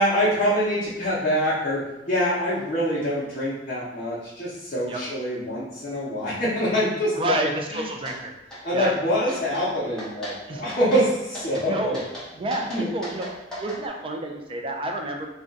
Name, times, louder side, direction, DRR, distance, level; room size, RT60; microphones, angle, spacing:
voice 1, 0.0-7.8 8.6-12.0 12.7-12.9, equal, 40° left, -12 dB, 0.8 m, -25 dB
voice 2, 7.1-8.3 8.7-8.9 10.5-10.6 11.6-12.0 12.3-15.3, right 1 dB, 30° right, 2 dB, 0.4 m, -30 dB
sound 1, 8.1-8.2 8.5-8.9 9.3-9.7 10.0-10.4 10.7-11.0 11.3-11.7 11.9-13.8, equal, 5° left, 0.9 m, -37 dB
2.4 x 2.2 x 3.8 m, 0.94 s
head